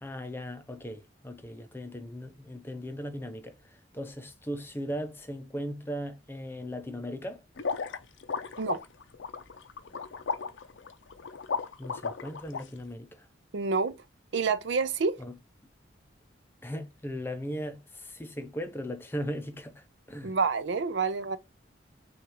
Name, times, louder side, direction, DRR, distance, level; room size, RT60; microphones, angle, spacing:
voice 1, 0.0-3.6 3.9-7.4 11.8-13.3 15.2-15.3 16.6-20.4, equal, 10° left, 0.5 m, -38 dB
sound 1, 7.6-12.6, left 5 dB, 70° left, 0.5 m, -34 dB
voice 2, 13.5-14.0 14.3-15.2 20.2-21.4, right 4 dB, 70° right, 0.5 m, -28 dB
6.1 x 2.4 x 3.0 m
head